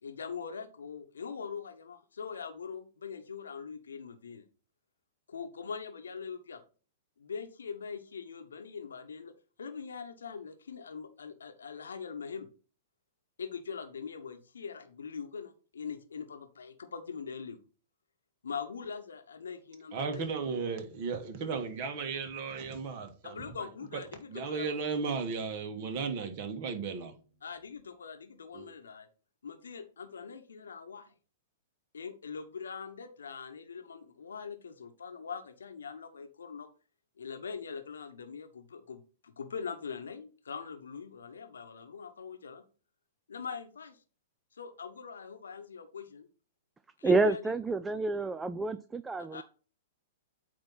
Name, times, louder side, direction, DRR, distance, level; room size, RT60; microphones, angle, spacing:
voice 1, 0.0-4.4 5.3-6.6 7.2-9.3 9.6-12.5 13.4-17.6 18.4-20.3 23.2-24.7 27.4-29.1 29.4-31.1 31.9-36.7 37.2-42.6 43.3-44.0 44.5-46.3 47.0-47.5 49.2-49.4, left 6 dB, 75° left, 1.0 m, -42 dB
voice 2, 19.9-23.5 23.9-24.0 24.3-27.1 28.5-28.7, right 5 dB, 45° right, 1.6 m, -35 dB
voice 3, 47.0-49.4, right 3 dB, 10° right, 0.3 m, -29 dB
8.5 x 2.9 x 5.5 m
hypercardioid pair, 110°, 0 cm